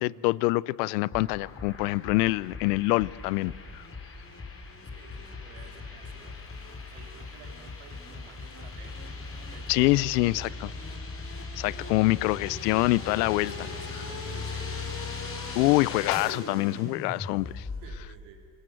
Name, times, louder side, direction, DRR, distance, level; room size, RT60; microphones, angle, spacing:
voice 1, 0.0-3.8 9.7-10.7 11.6-13.5 15.5-17.7, left 21 dB, 80° left, 0.7 m, -25 dB
sound 1, 1.1-18.0, left 3 dB, 25° left, 4.2 m, -39 dB
voice 2, 4.8-6.5 6.9-10.6 13.5-14.9 17.8-18.5, right 6 dB, 70° right, 3.1 m, -52 dB
sound 2, 6.2-11.1, left 1 dB, 5° left, 4.2 m, -59 dB
28.5 x 20.0 x 7.8 m
supercardioid pair, 95°, 48 cm